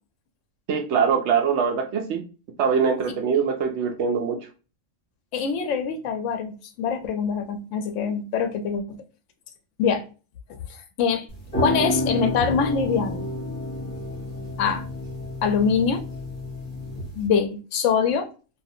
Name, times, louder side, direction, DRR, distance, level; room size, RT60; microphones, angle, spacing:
voice 1, 0.7-2.2 2.6-4.4, right 6 dB, 65° right, 0.8 m, -23 dB
voice 2, 5.3-9.0 9.8-10.0 10.5-11.3 11.6-13.3 14.6-14.8 15.4-16.0 17.2-18.3, left 6 dB, 70° left, 0.9 m, -24 dB
sound 1, 11.3-17.3, left 1 dB, 30° left, 1.2 m, -30 dB
2.5 x 2.4 x 2.6 m
omnidirectional pair, 1.4 m